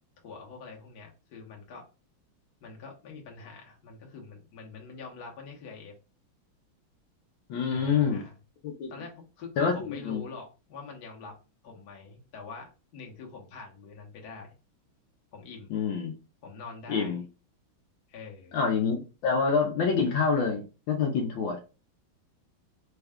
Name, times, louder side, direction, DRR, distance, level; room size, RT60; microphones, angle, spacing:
voice 1, 0.2-1.8 2.6-5.9 7.7-8.4 8.9-11.4 11.6-14.5 15.3-15.7 16.4-17.1 18.1-18.5, left 4 dB, 55° left, 0 dB, 1.4 m, -44 dB
voice 2, 7.5-8.2 8.6-9.0 9.6-10.2 15.7-16.1 16.9-17.2 18.5-21.6, left 5 dB, 75° left, 1 dB, 1.5 m, -27 dB
4.3 x 2.3 x 3.5 m, 0.33 s
omnidirectional pair, 2.2 m